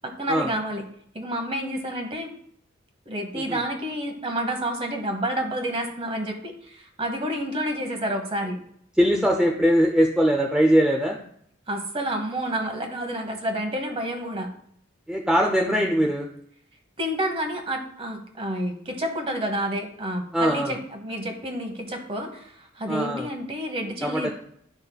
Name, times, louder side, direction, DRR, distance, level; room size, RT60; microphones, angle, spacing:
voice 1, 0.0-0.9 1.1-2.3 3.1-8.6 11.7-14.5 17.0-24.3, right 1 dB, 25° right, 4 dB, 1.1 m, -29 dB
voice 2, 9.0-11.2 15.1-16.3 20.3-20.7 22.9-23.3 24.0-24.3, equal, 5° right, 1 dB, 0.5 m, -21 dB
12.0 x 5.2 x 2.3 m, 0.67 s
head